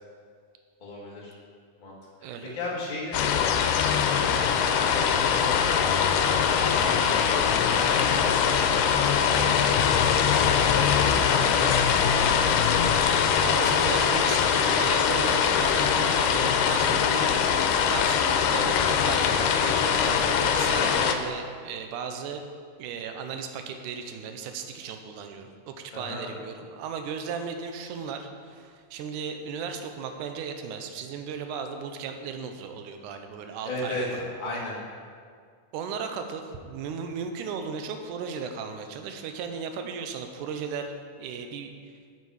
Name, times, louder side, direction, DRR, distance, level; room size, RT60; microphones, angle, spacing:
voice 1, 0.8-1.3 1.8-2.0 2.5-3.8 4.1-6.0 6.6-7.8 8.3-10.2 10.9-12.5 25.9-26.3 33.6-34.8, left 2 dB, 25° left, -6 dB, 0.9 m, -36 dB
voice 2, 2.2-2.6 13.4-22.4 22.8-34.0 35.7-41.9, right 6 dB, 80° right, 6 dB, 2.1 m, -36 dB
sound 1, 3.1-21.2, left 7 dB, 85° left, 2.2 m, -22 dB
8.4 x 6.8 x 4.7 m, 2.1 s
omnidirectional pair, 3.7 m